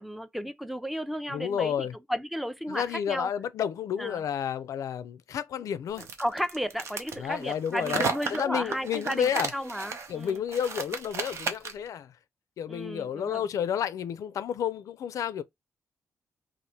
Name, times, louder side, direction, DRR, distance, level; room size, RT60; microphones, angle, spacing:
voice 1, 0.0-3.3 4.0-4.2 6.0-10.4 12.7-13.5, equal, ahead, 0.4 m, -34 dB
voice 2, 1.3-1.9 2.7-6.1 7.2-9.5 10.1-12.1 12.6-15.4, left 9 dB, 75° left, 0.4 m, -31 dB
sound 1, 6.0-11.9, right 5 dB, 55° right, 0.7 m, -34 dB
2.8 x 2.5 x 3.2 m
wide cardioid pair, 135°, 6 cm